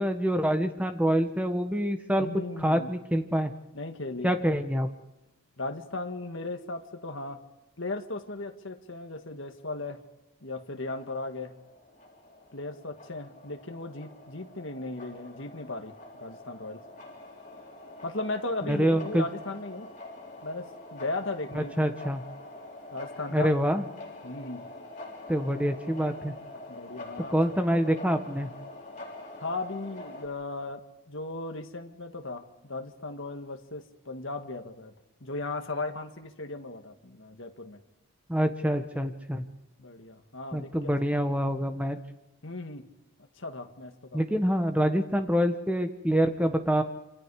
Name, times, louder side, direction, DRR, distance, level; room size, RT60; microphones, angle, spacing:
voice 1, 0.0-3.5 4.2-4.9 18.7-19.2 21.5-22.2 23.3-23.8 25.3-26.3 27.3-28.5 38.3-39.4 40.5-42.0 44.1-46.8, equal, 5° right, 7 dB, 1.3 m, -26 dB
voice 2, 2.2-2.9 3.7-4.4 5.6-7.4 7.8-10.0 10.4-11.5 12.5-16.8 18.0-19.9 20.4-21.9 22.9-23.5 24.2-24.7 26.7-27.4 29.4-34.9 35.2-37.8 39.8-40.9 42.4-42.9 43.4-44.2, left 2 dB, 60° left, 5 dB, 1.9 m, -37 dB
sound 1, 11.0-30.3, left 2 dB, 35° left, 3.9 m, -45 dB
27.0 x 26.5 x 4.9 m, 0.97 s
head